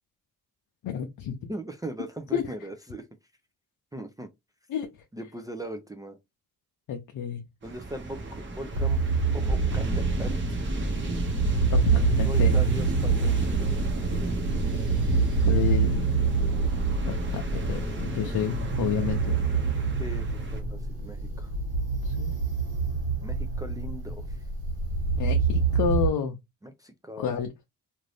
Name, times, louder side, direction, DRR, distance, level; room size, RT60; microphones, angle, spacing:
voice 1, 0.8-1.5 2.3-2.4 4.7-4.9 6.9-7.4 11.7-11.8 12.2-12.6 15.5-16.0 17.1-19.4 22.0-22.3 25.2-26.4 27.2-27.5, left 8 dB, 65° left, 0.6 m, -30 dB
voice 2, 1.5-3.1 3.9-4.3 5.1-6.2 7.6-9.0 9.3-10.6 11.9-13.7 20.0-21.5 23.2-24.4 26.6-27.3, right 1 dB, 10° right, 0.4 m, -39 dB
sound 1, 7.6-20.6, right 2 dB, 30° right, 1.0 m, -33 dB
sound 2, 8.7-26.1, right 4 dB, 80° right, 1.4 m, -26 dB
2.5 x 2.5 x 3.3 m
cardioid pair, 95°, 36 cm